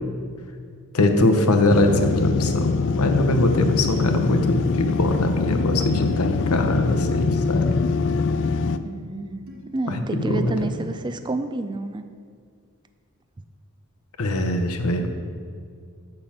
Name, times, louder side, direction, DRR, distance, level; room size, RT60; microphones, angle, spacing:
voice 1, 0.9-7.8 9.9-10.5 14.2-15.1, left 1 dB, 80° left, 6 dB, 0.8 m, -21 dB
sound 1, 1.7-8.8, left 4 dB, 55° left, 0.3 m, -24 dB
sound 2, 2.4-2.6 3.2-3.3 3.9-4.0 4.6-4.8 5.7-5.9 6.9-7.1 7.7-7.9 8.6-8.7 9.5-9.6, equal, 65° right, 1.2 m, -44 dB
voice 2, 8.8-9.4 9.7-12.0, right 2 dB, 20° right, 9 dB, 0.4 m, -29 dB
6.8 x 5.7 x 7.1 m, 2.1 s
head